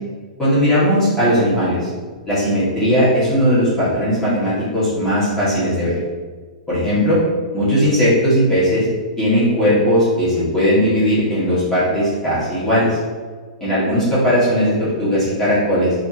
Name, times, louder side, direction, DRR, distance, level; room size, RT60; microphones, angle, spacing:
voice 1, 0.4-1.9 2.3-5.9 6.7-7.2 7.5-8.9 9.2-13.0 13.6-15.9, equal, 10° left, -12 dB, 1.3 m, -17 dB
3.4 x 2.7 x 2.5 m, 1.5 s
hypercardioid pair, 125°, 4 cm